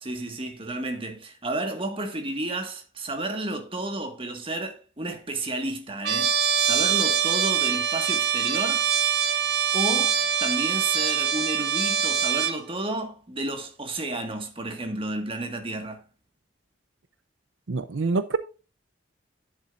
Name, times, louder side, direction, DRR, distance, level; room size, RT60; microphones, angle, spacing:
voice 1, 0.0-8.9 9.7-16.0, right 2 dB, 30° right, 1.7 m, -32 dB
Trumpet, 6.0-12.6, right 7 dB, 55° right, 1.2 m, -24 dB
voice 2, 17.7-18.4, right 3 dB, 75° right, 0.6 m, -25 dB
10.5 x 7.4 x 2.5 m
head